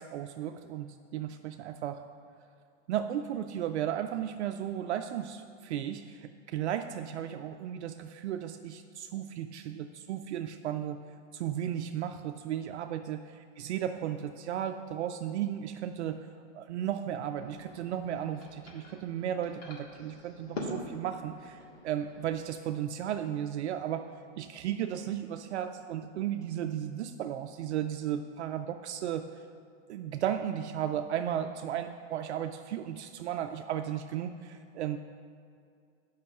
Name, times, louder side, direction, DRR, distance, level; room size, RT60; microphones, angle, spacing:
voice 1, 0.0-2.0 2.9-11.0 11.3-16.3 16.5-24.1 24.4-29.3 29.9-35.0, right 10 dB, 60° right, 7 dB, 0.5 m, -35 dB
sound 1, 17.2-22.3, left 1 dB, 50° left, 1.8 m, -44 dB
7.7 x 5.6 x 6.6 m, 2.3 s
hypercardioid pair, 155°, 39 cm